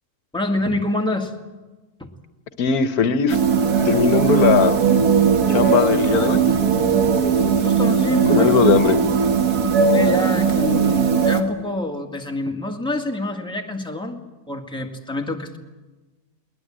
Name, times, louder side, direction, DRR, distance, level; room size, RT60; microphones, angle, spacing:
voice 1, 0.3-1.3 2.0-2.1 7.6-8.8 9.9-14.2 14.5-15.6, left 1 dB, 5° left, 2 dB, 1.8 m, -26 dB
voice 2, 2.6-3.4 3.8-4.8 5.5-6.4 8.3-9.0, left 6 dB, 80° left, 11 dB, 1.5 m, -19 dB
sound 1, 3.3-11.4, right 6 dB, 85° right, 2.1 m, -18 dB
21.0 x 20.5 x 8.9 m, 1.2 s
omnidirectional pair, 1.6 m